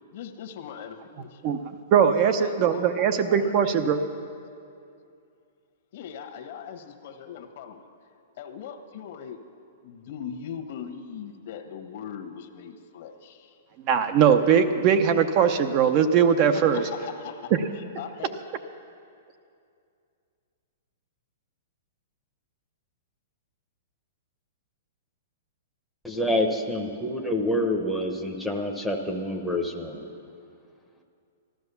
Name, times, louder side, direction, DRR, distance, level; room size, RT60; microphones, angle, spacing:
voice 1, 0.1-1.4 2.4-2.9 3.2-3.7 5.9-7.8 8.4-9.4 9.8-13.5 16.4-18.3, left 8 dB, 50° left, 5 dB, 1.2 m, -40 dB
voice 2, 1.9-4.0 13.9-16.8, right 7 dB, 30° right, 8 dB, 0.6 m, -20 dB
voice 3, 26.0-30.1, left 1 dB, ahead, 3 dB, 0.9 m, -27 dB
14.0 x 12.5 x 6.9 m, 2.5 s
hypercardioid pair, 165°, 0 cm